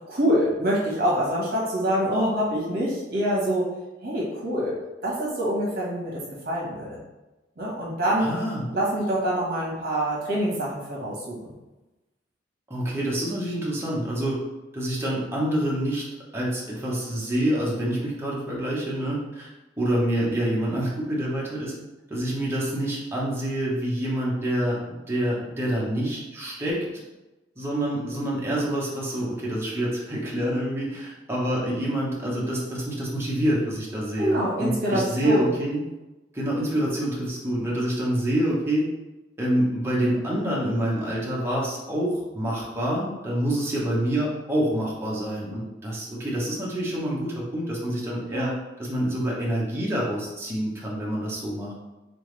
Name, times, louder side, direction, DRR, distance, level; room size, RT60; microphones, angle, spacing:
voice 1, 0.1-3.7 4.0-4.7 5.0-7.0 7.6-8.3 8.7-11.5 34.2-35.5 48.3-48.6, equal, 50° right, -5 dB, 1.4 m, -25 dB
voice 2, 8.2-8.6 12.7-14.4 14.7-16.0 16.3-19.5 19.8-21.7 22.1-26.8 27.6-35.8 36.3-38.8 39.4-51.7, right 1 dB, 15° right, -5 dB, 0.9 m, -27 dB
3.7 x 3.5 x 3.2 m, 1.1 s
head